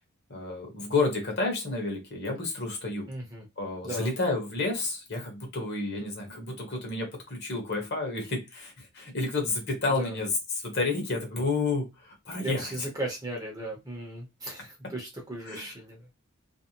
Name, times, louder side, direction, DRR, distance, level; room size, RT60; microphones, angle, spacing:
voice 1, 0.3-3.1 3.6-10.3 10.6-12.7 15.5-15.6, left 3 dB, 50° left, 1 dB, 0.9 m, -30 dB
voice 2, 3.1-3.4 3.8-4.1 10.0-10.2 12.4-16.1, right 1 dB, 15° right, -1 dB, 0.7 m, -37 dB
2.5 x 2.0 x 2.8 m, 0.22 s
head